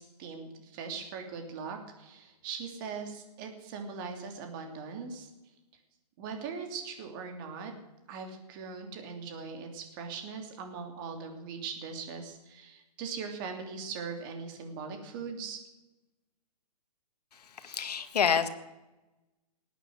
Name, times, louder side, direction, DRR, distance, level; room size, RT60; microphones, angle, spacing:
voice 1, 0.0-5.3 6.2-7.7 8.1-15.6, right 5 dB, 30° right, 4 dB, 2.9 m, -40 dB
voice 2, 17.6-18.5, left 7 dB, 75° left, 10 dB, 1.8 m, -27 dB
19.5 x 9.2 x 8.0 m, 1.0 s
hypercardioid pair, 155°, 21 cm